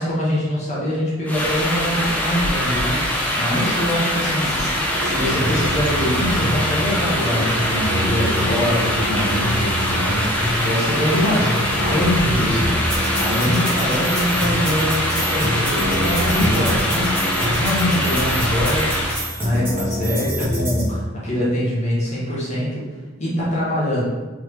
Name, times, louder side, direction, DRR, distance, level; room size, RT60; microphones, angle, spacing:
voice 1, 0.0-12.8 13.2-19.0 19.4-22.9 23.2-24.0, equal, 35° left, -7 dB, 1.1 m, -24 dB
sound 1, 1.3-19.3, left 1 dB, 10° left, 0.6 m, -23 dB
sound 2, 4.9-20.9, equal, 10° right, 1.2 m, -26 dB
3.6 x 3.2 x 3.3 m, 1.3 s
head